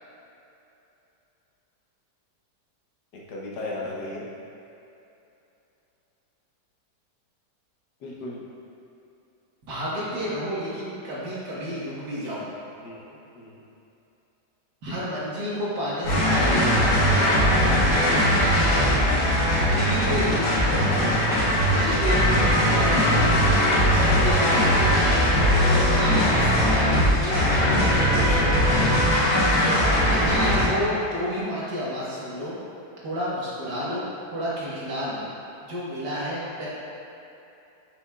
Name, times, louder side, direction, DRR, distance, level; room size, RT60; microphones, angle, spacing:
voice 1, 3.3-4.3 8.0-8.5 12.8-13.6 18.0-18.4, left 2 dB, 70° left, -4 dB, 1.5 m, -36 dB
voice 2, 9.6-12.5 14.8-17.5 19.5-21.2 21.7-23.5 23.9-25.0 25.7-28.7 30.0-32.6 33.0-34.0 34.3-35.2 35.6-36.7, equal, 80° right, -8 dB, 2.1 m, -31 dB
sound 1, 16.0-30.6, equal, 50° left, 2.0 m, -20 dB
7.3 x 6.0 x 2.4 m, 2.9 s
omnidirectional pair, 1.8 m